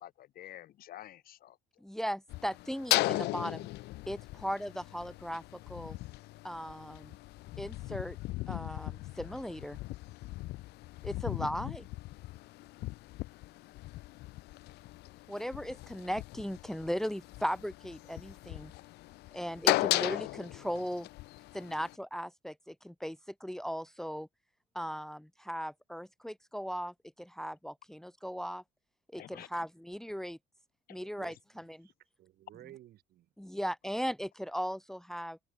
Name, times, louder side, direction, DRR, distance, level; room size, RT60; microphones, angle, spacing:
voice 1, 0.0-1.6 29.2-29.5 30.9-31.0 31.3-31.4, left 13 dB, 60° left, 1.1 m, -49 dB
voice 2, 1.8-3.7 4.1-6.0 6.4-7.2 7.6-8.2 8.5-9.8 11.0-11.9 15.3-18.7 19.3-21.1 21.5-24.3 24.7-28.6 29.1-30.4 30.9-31.9 33.4-35.4, equal, 5° left, 1.3 m, -38 dB
sound 1, 2.3-22.0, left 19 dB, 75° left, 0.5 m, -37 dB
voice 3, 31.0-31.9 32.2-33.3, right 14 dB, 70° right, 6.5 m, -55 dB
cardioid pair, 110°, 17 cm